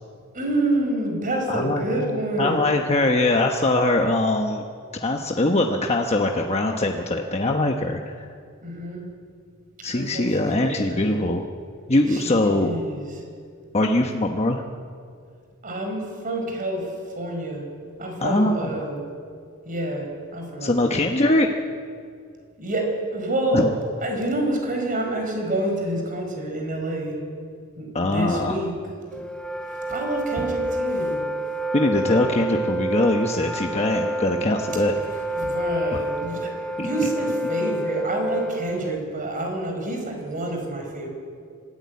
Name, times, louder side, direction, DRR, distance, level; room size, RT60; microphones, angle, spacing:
voice 1, 0.3-2.8 8.6-9.1 9.9-11.2 12.1-13.2 15.6-16.9 17.2-17.6 18.0-19.0 19.6-21.0 22.6-23.7 24.0-27.2 27.8-28.7 29.9-31.2 35.1-41.1, right 1 dB, 40° right, 3 dB, 5.1 m, -28 dB
voice 2, 1.5-4.6 5.0-8.3 9.8-11.5 11.9-12.8 13.7-14.6 18.2-18.5 20.6-21.5 23.5-23.7 27.9-28.6 31.7-34.9 35.9-36.0 36.8-36.9, left 2 dB, 30° left, 2 dB, 1.0 m, -22 dB
Wind instrument woodwind instrument, 29.1-39.0, right 1 dB, 5° left, 0.8 m, -28 dB
25.5 x 14.0 x 9.4 m, 2.2 s
head